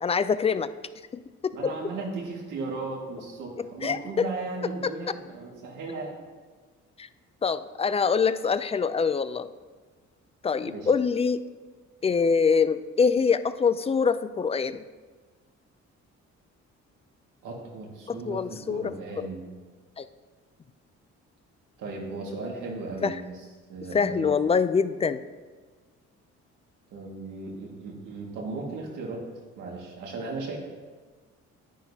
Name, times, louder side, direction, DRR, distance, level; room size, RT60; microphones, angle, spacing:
voice 1, 0.0-0.7 1.1-1.7 3.6-4.3 4.8-4.9 7.0-7.1 7.4-9.5 10.4-11.5 12.0-14.8 18.1-19.3 20.0-20.1 23.0-23.2 23.9-25.2, left 5 dB, 20° left, 14 dB, 0.3 m, -25 dB
voice 2, 1.5-6.2 10.7-10.9 17.4-19.5 21.8-23.4 23.7-24.3 26.9-29.2 29.6-30.6, right 3 dB, 85° right, -1 dB, 1.9 m, -36 dB
9.9 x 9.6 x 2.8 m, 1.4 s
cardioid pair, 90°, 30 cm